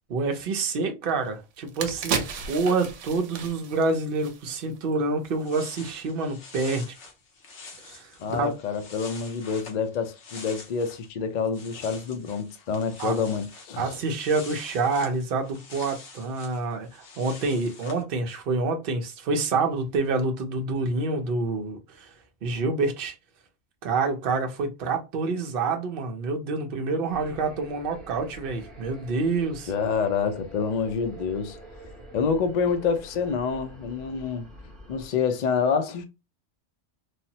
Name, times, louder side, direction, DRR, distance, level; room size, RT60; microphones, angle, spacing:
voice 1, 0.1-6.9 7.8-8.5 13.0-13.2 13.8-22.1 22.4-23.1 23.8-29.7, right 3 dB, 55° right, 0.7 m, -27 dB
sound 1, 1.1-1.2 1.6-4.8 5.2-5.3, right 6 dB, 85° right, 0.9 m, -33 dB
sound 2, 5.0-5.1 5.2-11.1 11.4-18.0, left 4 dB, 75° left, 1.1 m, -46 dB
voice 2, 8.2-14.0 29.7-31.6 32.1-34.5 34.9-36.0, left 6 dB, 60° left, 0.4 m, -27 dB
sound 3, 27.1-35.1, right 1 dB, ahead, 0.8 m, -46 dB
3.2 x 2.0 x 2.7 m
omnidirectional pair, 1.2 m